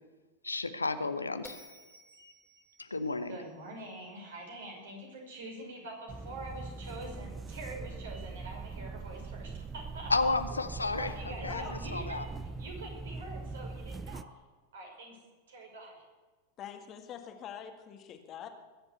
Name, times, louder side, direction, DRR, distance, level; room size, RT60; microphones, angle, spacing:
voice 1, 0.4-2.3 2.8-3.4 10.1-12.3, left 3 dB, 80° left, 11 dB, 1.0 m, -33 dB
Bell, 1.4-4.7, left 2 dB, 10° left, 3.1 m, -56 dB
voice 2, 3.3-10.1 10.9-12.2 12.6-14.2 14.7-15.2 15.5-16.0, right 2 dB, 60° right, 0 dB, 5.6 m, -45 dB
sound 1, 6.1-14.2, right 3 dB, 15° right, 0.6 m, -41 dB
voice 3, 16.6-18.5, left 9 dB, 30° left, 6 dB, 1.7 m, -44 dB
21.0 x 7.9 x 8.2 m, 1.3 s
figure-of-eight pair, 90°, 0 cm